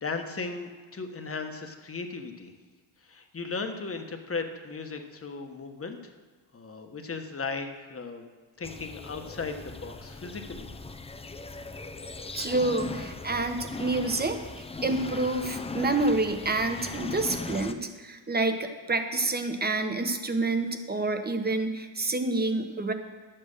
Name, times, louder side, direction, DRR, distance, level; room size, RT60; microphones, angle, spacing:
voice 1, 0.0-2.5 3.0-6.1 6.5-8.3 8.6-10.7, left 4 dB, 30° left, 5 dB, 1.3 m, -36 dB
sound 1, 8.6-17.7, left 3 dB, 15° left, 0.6 m, -38 dB
voice 2, 12.3-22.9, right 2 dB, 20° right, 7 dB, 1.1 m, -28 dB
10.5 x 7.7 x 6.7 m, 1.4 s
cardioid pair, 105°, 47 cm